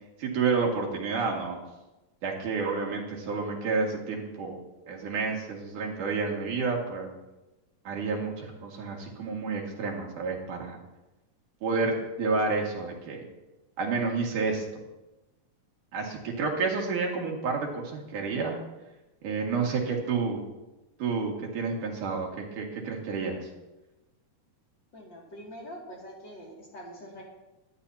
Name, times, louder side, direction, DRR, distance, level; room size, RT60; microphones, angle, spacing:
voice 1, 0.2-1.6 2.2-4.6 4.9-7.1 7.9-10.8 11.6-13.3 13.8-14.7 15.9-18.6 19.2-20.4 21.0-23.5, right 4 dB, 70° right, -1 dB, 3.6 m, -30 dB
voice 2, 24.9-27.2, equal, 35° left, -3 dB, 3.0 m, -44 dB
24.0 x 12.0 x 2.9 m, 1.0 s
omnidirectional pair, 3.7 m